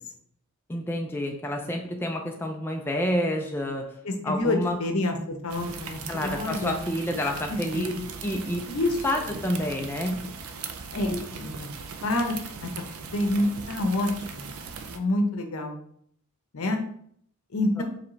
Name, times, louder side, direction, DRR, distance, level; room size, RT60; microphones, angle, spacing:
voice 1, 0.7-3.9 4.2-4.8 6.1-7.9 8.2-8.6 9.0-10.3 11.1-11.2 17.8-17.9, left 1 dB, 10° left, 1 dB, 0.4 m, -29 dB
voice 2, 4.0-6.8 7.7-8.1 8.7-9.0 10.9-11.7 12.0-12.3 12.6-12.7 13.0-14.5 14.9-15.7 16.5-16.8 17.5-17.8, left 2 dB, 70° left, 5 dB, 0.7 m, -27 dB
sound 1, 5.5-15.0, right 5 dB, 70° right, 0.5 m, -39 dB
4.9 x 3.3 x 3.1 m, 0.65 s
head